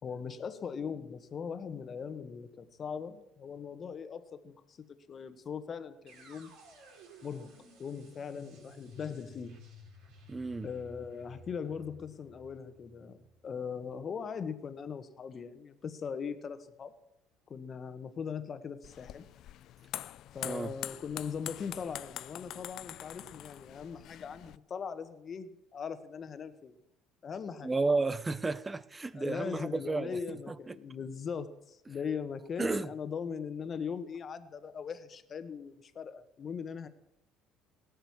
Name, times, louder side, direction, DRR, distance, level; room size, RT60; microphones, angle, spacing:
voice 1, 0.0-4.8 5.1-6.5 7.2-9.6 10.6-16.9 17.5-19.2 20.3-26.7 27.2-27.7 29.1-36.9, left 6 dB, 45° left, 1.5 m, -40 dB
sound 1, 6.1-14.0, equal, 70° right, 5.0 m, -55 dB
voice 2, 10.3-10.7 20.4-20.7 27.6-30.8 32.6-32.9, right 3 dB, 20° right, 1.0 m, -32 dB
sound 2, 18.8-24.6, left 13 dB, 60° left, 0.4 m, -44 dB
17.5 x 6.7 x 9.6 m
hypercardioid pair, 70°, 0 cm